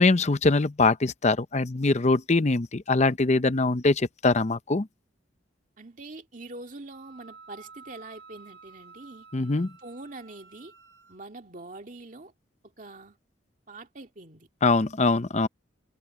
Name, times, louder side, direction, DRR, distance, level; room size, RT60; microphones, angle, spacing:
voice 1, 0.0-4.9 9.3-9.7 14.6-15.5, left 3 dB, 35° left, 0.7 m, -23 dB
voice 2, 5.8-9.3 9.8-10.7 11.1-12.3 12.6-13.2 13.7-14.5, right 2 dB, 40° right, 2.1 m, -44 dB
Wind instrument woodwind instrument, 6.9-11.2, right 5 dB, 65° right, 4.3 m, -51 dB
head